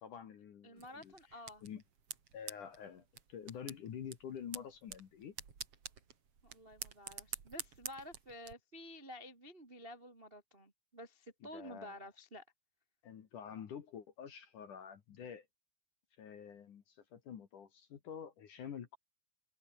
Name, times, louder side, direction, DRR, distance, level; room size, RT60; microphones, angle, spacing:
voice 1, 0.0-1.8 2.3-5.3 11.4-12.1 13.0-15.5 16.2-19.0, left 8 dB, 55° left, 2.5 m, -48 dB
voice 2, 0.6-1.6 6.4-12.4, equal, 80° right, 0.5 m, -51 dB
sound 1, 0.8-8.5, right 6 dB, 35° right, 2.8 m, -49 dB
omnidirectional pair, 5.8 m